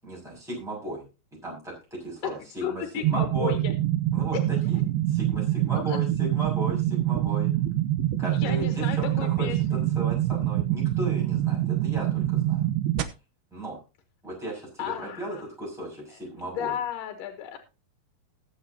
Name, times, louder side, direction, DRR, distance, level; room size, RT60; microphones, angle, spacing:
voice 1, 0.0-1.1 1.4-3.6 4.1-7.5 8.2-12.7 13.5-13.8 14.2-16.8, right 1 dB, ahead, -4 dB, 6.3 m, -36 dB
voice 2, 2.6-3.7 5.7-6.0 8.3-9.8 14.8-15.4 16.1-17.6, left 10 dB, 70° left, 5 dB, 2.7 m, -34 dB
sound 1, 3.0-13.0, right 13 dB, 90° right, 2.8 m, -25 dB
21.0 x 7.9 x 2.9 m, 0.30 s
omnidirectional pair, 4.3 m